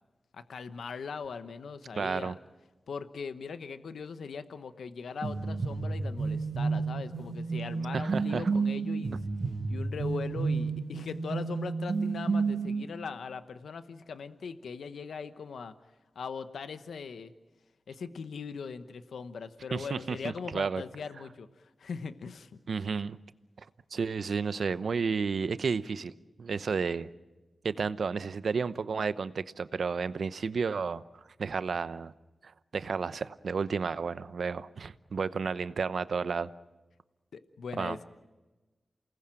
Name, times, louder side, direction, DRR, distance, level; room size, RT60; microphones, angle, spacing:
voice 1, 0.3-2.3 2.9-9.2 9.7-15.7 16.1-17.3 17.9-22.5 37.3-38.1, left 5 dB, 90° left, 10 dB, 1.1 m, -40 dB
voice 2, 1.9-2.3 7.9-8.5 19.7-20.2 20.5-20.8 22.7-23.2 23.6-23.7 23.9-26.1 26.4-27.1 27.6-31.0 31.4-32.1 32.4-36.5 37.8-38.0, right 5 dB, 75° right, 14 dB, 0.8 m, -32 dB
Synth Loop, 5.2-12.8, right 4 dB, 60° right, 1.9 m, -31 dB
29.0 x 19.5 x 9.0 m, 1.2 s
cardioid pair, 45°, 0 cm